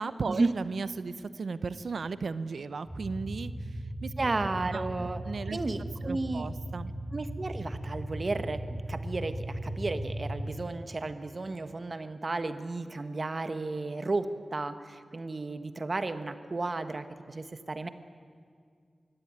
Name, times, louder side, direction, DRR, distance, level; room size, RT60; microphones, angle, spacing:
voice 1, 0.0-3.7 4.0-4.1 4.4-4.8 5.2-5.6 6.0-7.0, right 4 dB, 80° right, 15 dB, 0.7 m, -36 dB
sound 1, 2.9-10.5, right 1 dB, 5° right, 2.8 m, -37 dB
voice 2, 4.2-5.2 5.5-6.5 7.1-17.9, right 3 dB, 50° right, 10 dB, 1.4 m, -33 dB
24.0 x 16.5 x 9.6 m, 2.1 s
cardioid pair, 55°, 0 cm